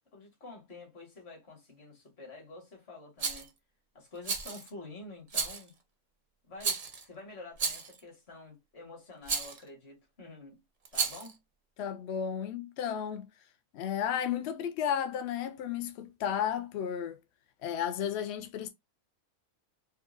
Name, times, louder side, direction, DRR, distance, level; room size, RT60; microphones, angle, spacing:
voice 1, 0.1-3.5 3.9-5.8 6.5-10.6 10.9-11.4, left 2 dB, 45° left, 1.6 m, -48 dB
Rattle, 3.2-3.5 4.2-4.7 5.3-5.7 6.6-7.0 7.6-8.0 9.3-9.6 10.9-11.3, right 5 dB, 75° right, 0.3 m, -33 dB
voice 2, 11.8-13.3 13.7-17.2 17.6-18.7, left 9 dB, 75° left, 0.6 m, -33 dB
4.5 x 2.3 x 2.4 m
omnidirectional pair, 1.6 m